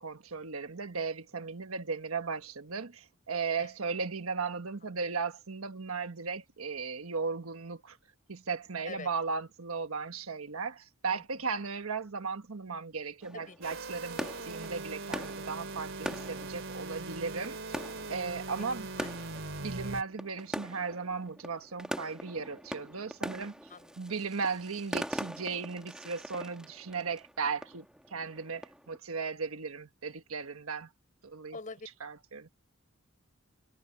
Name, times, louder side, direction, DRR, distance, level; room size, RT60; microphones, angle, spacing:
voice 1, 0.0-8.0 8.3-17.6 18.1-18.9 19.6-23.5 24.0-27.8 28.1-30.9 31.2-31.5 32.0-32.5, right 5 dB, 80° right, 1.4 m, -36 dB
voice 2, 11.1-11.4 13.3-13.8 18.6-18.7 18.9-19.3 23.7-24.0 31.5-31.9, left 3 dB, 40° left, 4.5 m, -46 dB
sound 1, 13.2-29.0, equal, 5° right, 1.3 m, -43 dB
sound 2, 13.6-20.0, right 3 dB, 60° right, 3.6 m, -41 dB
head